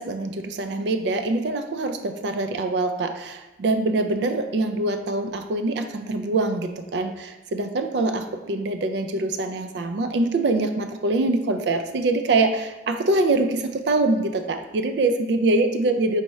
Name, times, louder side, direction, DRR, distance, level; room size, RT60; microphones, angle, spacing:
voice 1, 0.0-16.2, right 2 dB, 60° right, 7 dB, 0.4 m, -24 dB
4.1 x 3.5 x 3.1 m, 1.0 s
head